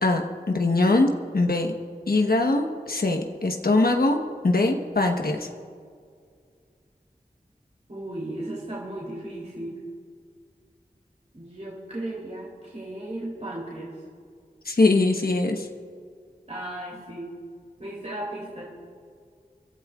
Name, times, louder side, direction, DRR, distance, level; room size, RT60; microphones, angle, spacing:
voice 1, 0.0-1.1 1.3-1.7 2.1-4.2 4.4-5.5 14.7-15.7, left 2 dB, 65° left, 3 dB, 1.2 m, -22 dB
voice 2, 7.9-9.8 11.3-14.0 16.5-17.3 17.8-18.6, right 1 dB, 45° right, -5 dB, 3.1 m, -35 dB
27.5 x 12.5 x 2.4 m, 2.2 s
wide cardioid pair, 50°, 16 cm